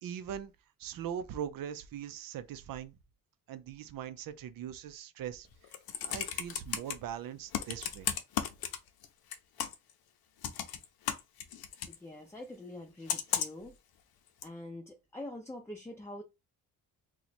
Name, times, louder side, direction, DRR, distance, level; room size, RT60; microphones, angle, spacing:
voice 1, 0.0-0.5 0.8-2.9 3.5-5.5 6.0-8.1, right 9 dB, 70° right, 0.6 m, -41 dB
Computer keyboard, 5.5-6.9 7.5-9.1 9.3-9.9 10.4-12.0 13.1-13.7 14.4-14.5, left 9 dB, 85° left, 0.7 m, -34 dB
voice 2, 11.9-13.7 14.4-16.2, left 1 dB, 5° left, 0.5 m, -45 dB
2.9 x 2.3 x 4.1 m
cardioid pair, 125°, 35 cm